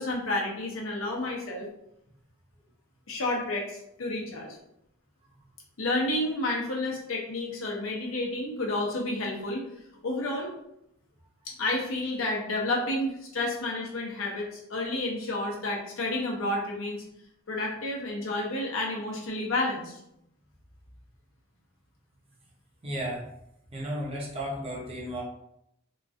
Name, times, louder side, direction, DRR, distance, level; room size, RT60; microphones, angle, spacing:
voice 1, 0.0-1.7 3.1-4.6 5.8-9.7 10.0-10.5 11.4-17.0 17.5-20.0, left 2 dB, 70° left, -1 dB, 0.8 m, -30 dB
voice 2, 22.8-23.3 23.7-25.2, equal, 30° right, -3 dB, 0.6 m, -33 dB
2.9 x 2.5 x 2.5 m, 0.79 s
head